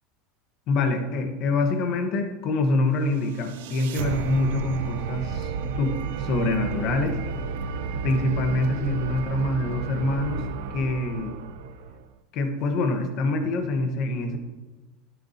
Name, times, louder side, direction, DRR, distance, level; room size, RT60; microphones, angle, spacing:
voice 1, 0.7-7.1 8.0-10.4 10.7-11.4 12.3-14.4, left 2 dB, 50° left, 5 dB, 1.2 m, -25 dB
sound 1, 3.0-12.1, right 5 dB, 85° right, 0.5 m, -32 dB
11.5 x 6.8 x 2.9 m, 1.2 s
supercardioid pair, 140°, 0 cm